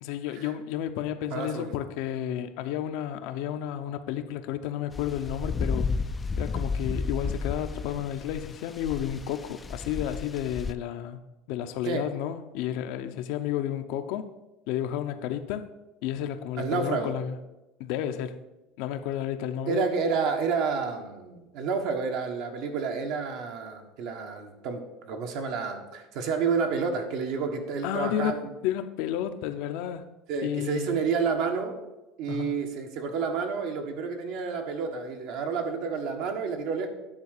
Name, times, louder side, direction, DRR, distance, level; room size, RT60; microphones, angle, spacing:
voice 1, 0.0-5.9 6.4-11.2 11.5-14.3 14.7-15.7 16.0-17.4 17.8-18.4 18.8-19.8 27.8-30.1 30.4-31.0 32.3-32.7, left 10 dB, 70° left, 0.7 m, -31 dB
voice 2, 1.3-1.7 11.8-12.0 16.6-17.1 19.7-28.5 30.3-31.8 32.2-36.9, right 5 dB, 65° right, 1.4 m, -30 dB
sound 1, 4.9-10.7, left 4 dB, 20° left, 0.3 m, -32 dB
9.8 x 3.9 x 6.6 m
supercardioid pair, 125°, 0 cm